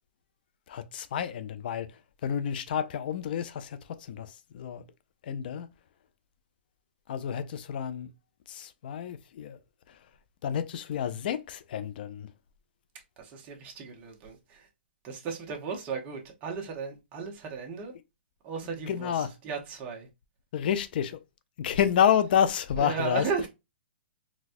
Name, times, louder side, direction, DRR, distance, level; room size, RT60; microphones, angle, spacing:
voice 1, 0.7-1.9 2.2-4.8 5.2-5.7 7.1-8.1 8.5-9.6 9.9-10.0 10.4-12.3 18.9-19.3 20.5-21.2 21.6-23.2, left 9 dB, 55° left, 0.4 m, -29 dB
voice 2, 13.2-14.7 15.0-18.0 18.4-20.1 22.8-23.5, right 5 dB, 25° right, 0.9 m, -35 dB
4.1 x 2.2 x 2.5 m
hypercardioid pair, 145°, 6 cm